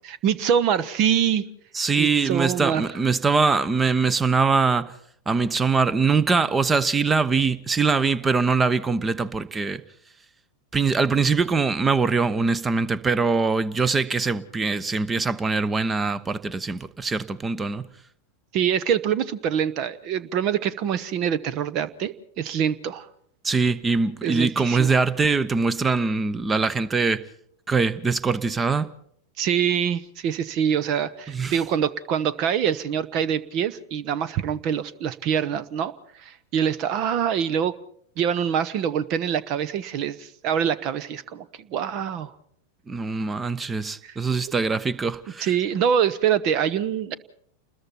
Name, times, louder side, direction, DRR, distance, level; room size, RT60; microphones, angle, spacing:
voice 1, 0.2-1.4 2.0-2.9 18.5-23.1 24.2-25.0 29.4-37.7 38.2-42.3 44.0-44.2 45.4-47.1, right 8 dB, 40° right, 1.0 m, -25 dB
voice 2, 1.7-4.9 5.3-9.8 10.7-17.8 23.4-27.2 27.7-28.9 31.3-31.6 42.9-45.5, right 4 dB, 15° right, 1.0 m, -23 dB
29.0 x 21.0 x 4.4 m
figure-of-eight pair, 90°, 0 cm